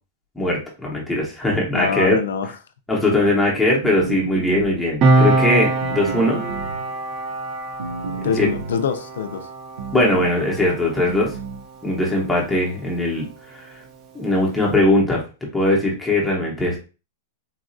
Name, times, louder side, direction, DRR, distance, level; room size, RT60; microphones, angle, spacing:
voice 1, 0.4-2.2 2.9-6.4 8.4-8.5 9.9-11.3 11.8-13.3 13.5-13.8 14.1-15.2 15.5-16.8, left 1 dB, 5° left, 0.8 m, -20 dB
voice 2, 1.7-2.5 8.1-9.5, left 7 dB, 85° left, 0.5 m, -25 dB
sound 1, 3.8-5.0 5.8-6.9 7.8-8.9 9.8-10.3 11.1-11.7, right 4 dB, 85° right, 0.4 m, -32 dB
Piano, 5.0-12.0 12.3-12.5, right 2 dB, 25° right, 0.6 m, -23 dB
3.9 x 2.3 x 2.5 m
supercardioid pair, 165°, 0 cm